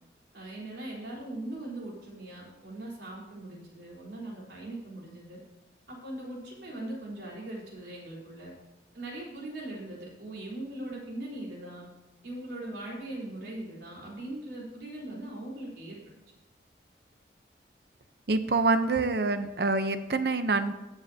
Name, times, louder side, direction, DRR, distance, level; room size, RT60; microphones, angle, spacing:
voice 1, 0.3-5.4 5.9-8.5 8.9-11.9 12.2-16.0, right 1 dB, 85° right, -4 dB, 3.9 m, -40 dB
voice 2, 18.3-20.7, right 3 dB, 65° right, 10 dB, 0.7 m, -26 dB
20.5 x 7.3 x 2.8 m, 1.0 s
head